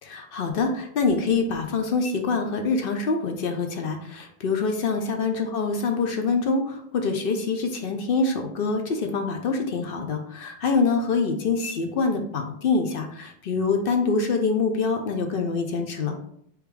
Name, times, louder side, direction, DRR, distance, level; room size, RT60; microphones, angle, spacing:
voice 1, 0.0-16.2, left 4 dB, 55° left, 5 dB, 0.7 m, -25 dB
5.1 x 3.2 x 3.3 m, 0.68 s
omnidirectional pair, 1.3 m